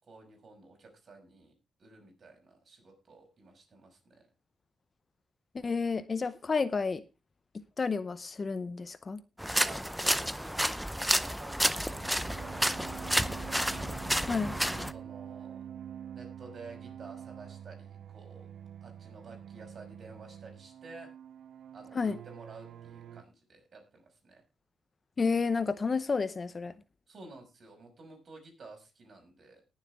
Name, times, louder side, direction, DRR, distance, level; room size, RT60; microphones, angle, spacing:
voice 1, 0.0-1.5 1.8-4.3 9.6-13.7 14.9-15.7 16.1-18.5 18.8-21.1 21.7-24.4 27.1-29.6, right 3 dB, 50° right, 2 dB, 5.8 m, -52 dB
voice 2, 5.5-7.0 7.8-9.2 14.3-14.5 21.9-22.2 25.2-26.7, left 4 dB, 35° left, 14 dB, 0.8 m, -30 dB
sound 1, 9.4-14.9, equal, ahead, 0.6 m, -30 dB
sound 2, 11.5-23.2, right 9 dB, 75° right, 0.7 m, -47 dB
19.0 x 7.3 x 3.6 m, 0.28 s
cardioid pair, 105°, 0 cm